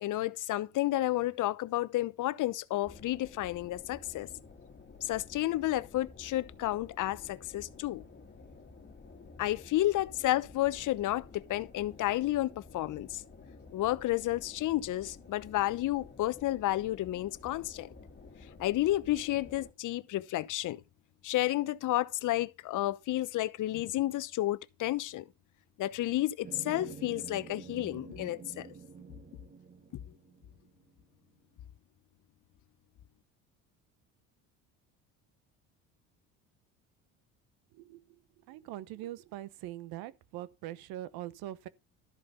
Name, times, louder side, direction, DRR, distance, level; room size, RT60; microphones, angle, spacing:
voice 1, 0.0-4.3 5.0-8.0 9.4-13.2 13.7-17.9 18.6-20.8 21.2-25.2 25.8-28.7, left 15 dB, 55° left, 0.8 m, -31 dB
sound 1, 2.8-19.7, left 4 dB, 30° left, 2.0 m, -52 dB
sound 2, 26.4-30.9, right 5 dB, 25° right, 1.3 m, -48 dB
voice 2, 38.5-41.7, right 14 dB, 70° right, 1.0 m, -42 dB
13.0 x 5.1 x 5.5 m
supercardioid pair, 80°, 37 cm